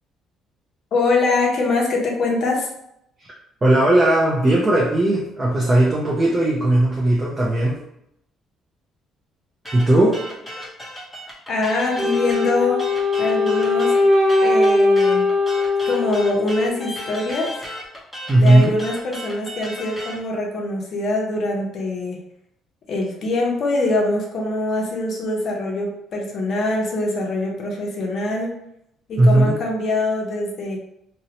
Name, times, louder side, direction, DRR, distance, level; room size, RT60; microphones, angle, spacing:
voice 1, 0.9-2.7 11.5-12.8 13.2-13.9 14.4-15.3 15.9-17.5 18.3-22.2 22.9-28.5 29.1-30.8, left 2 dB, 50° left, -1 dB, 0.6 m, -23 dB
voice 2, 3.6-7.8 9.7-10.2 18.3-18.7 29.2-29.6, right 1 dB, 20° right, -4 dB, 0.5 m, -17 dB
sound 1, 9.6-20.2, equal, 5° left, 0.8 m, -34 dB
Wind instrument woodwind instrument, 12.0-17.0, left 2 dB, 55° right, 0.7 m, -19 dB
2.7 x 2.0 x 2.8 m, 0.78 s
cardioid pair, 130°, 0 cm